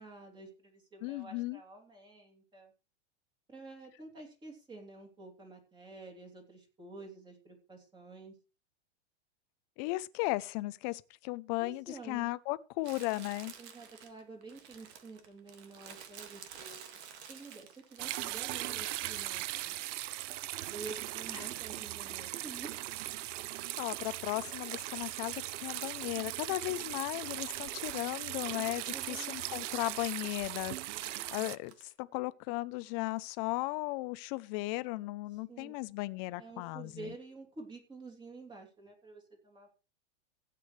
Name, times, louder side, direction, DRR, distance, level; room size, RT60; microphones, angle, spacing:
voice 1, 0.0-2.7 3.5-8.3 11.6-12.3 13.6-17.0 17.3-19.8 20.7-22.8 28.9-29.9 35.5-35.8 36.4-39.7, right 3 dB, 15° right, 3.1 m, -50 dB
voice 2, 1.0-1.6 9.8-13.5 21.4-21.5 23.8-31.7 32.0-37.1, left 20 dB, 35° left, 0.6 m, -36 dB
Crumpling crinkling, 12.8-18.6 19.0-21.2 21.5-26.5 26.9-29.3 29.6-29.7 30.5-31.9, right 8 dB, 65° right, 2.1 m, -54 dB
sound 1, 18.0-31.6, right 15 dB, 80° right, 0.5 m, -39 dB
16.0 x 8.5 x 3.3 m
supercardioid pair, 150°, 36 cm